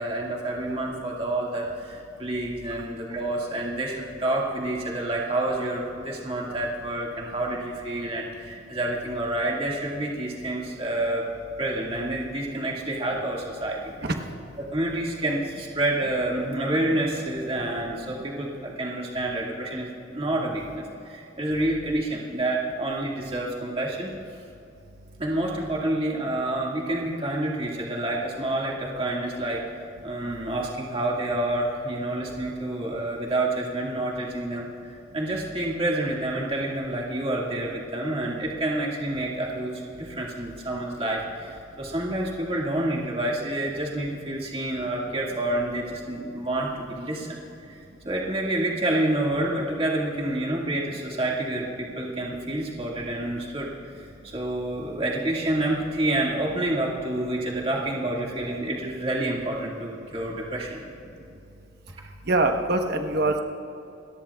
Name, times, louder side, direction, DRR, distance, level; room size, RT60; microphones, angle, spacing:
voice 1, 0.0-11.2 11.6-14.1 14.6-24.1 25.2-29.6 30.0-47.4 47.7-60.8, right 1 dB, 30° right, -3 dB, 2.0 m, -28 dB
voice 2, 62.3-63.4, right 2 dB, 55° right, 4 dB, 1.1 m, -23 dB
28.0 x 13.5 x 2.4 m, 2.7 s
head